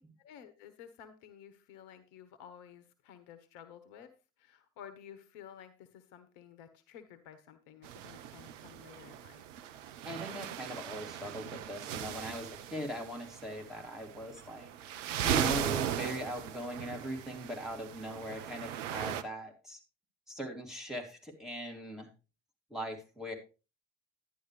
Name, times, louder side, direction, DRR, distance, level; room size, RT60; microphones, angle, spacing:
voice 1, 0.2-4.1 4.4-9.4, left 9 dB, 65° left, 11 dB, 1.2 m, -53 dB
sound 1, 7.8-19.2, right 10 dB, 75° right, 0.8 m, -38 dB
voice 2, 10.0-14.7 15.1-19.8 20.3-22.1 22.7-23.3, equal, ahead, 1 dB, 2.8 m, -40 dB
11.0 x 9.9 x 3.2 m, 0.31 s
figure-of-eight pair, 60°, 37 cm